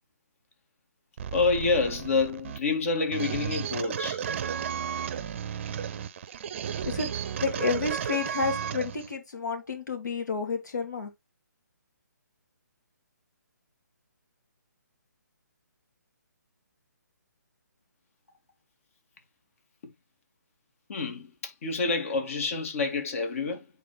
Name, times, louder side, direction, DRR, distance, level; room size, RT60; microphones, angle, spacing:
sound 1, 1.2-9.1, right 8 dB, 40° right, 0.7 m, -34 dB
voice 1, 1.3-4.2 19.8-19.9 20.9-23.7, left 4 dB, 45° left, 2.4 m, -28 dB
voice 2, 7.4-11.1, left 4 dB, 70° left, 3.1 m, -30 dB
8.4 x 4.4 x 3.4 m
figure-of-eight pair, 145°, 10 cm